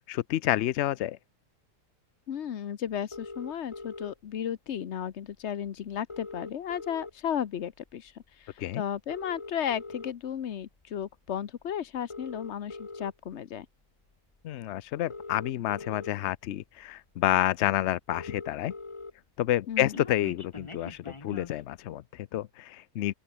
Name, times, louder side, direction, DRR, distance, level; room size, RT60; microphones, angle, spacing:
voice 1, 0.1-1.2 8.6-8.8 14.4-18.7 19.4-23.1, left 13 dB, 80° left, 0.6 m, -29 dB
voice 2, 2.3-13.7 19.7-20.0, left 9 dB, 50° left, 1.0 m, -34 dB
sound 1, 3.1-4.1 5.3-5.4 5.7-5.8 5.9-7.4 7.9-8.1 8.9-10.1 10.8-11.0 12.0-13.1 14.3-14.4 14.9-16.1 16.8-16.9 17.2-17.3 17.5-17.6 17.8-19.1 19.4-21.6, left 3 dB, 20° left, 1.1 m, -42 dB
open air
omnidirectional pair, 1.8 m